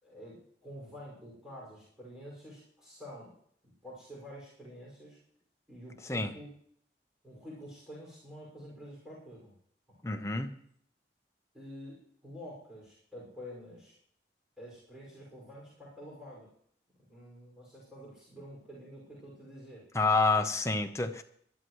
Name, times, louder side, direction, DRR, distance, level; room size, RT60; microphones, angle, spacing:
voice 1, 0.0-3.3 3.8-5.2 5.7-6.5 7.2-9.5 10.0-10.3 11.5-12.0 12.2-13.9 14.6-16.5 17.1-19.9, equal, 5° right, -6 dB, 5.7 m, -48 dB
voice 2, 10.0-10.5 19.9-21.2, left 3 dB, 15° left, 6 dB, 0.9 m, -28 dB
20.5 x 12.5 x 3.2 m, 0.65 s
head